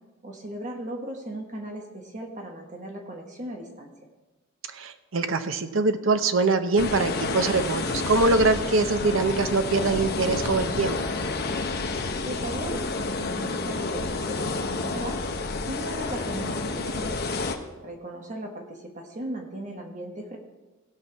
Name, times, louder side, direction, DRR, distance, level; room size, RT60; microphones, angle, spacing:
voice 1, 0.2-3.9 12.2-15.2 15.7-17.2 17.8-20.4, right 1 dB, 35° right, 2 dB, 1.3 m, -37 dB
voice 2, 4.7-11.1, right 3 dB, 75° right, 9 dB, 0.8 m, -23 dB
sound 1, 6.8-17.6, left 3 dB, 50° left, 0.8 m, -29 dB
16.5 x 5.8 x 4.6 m, 1.2 s
head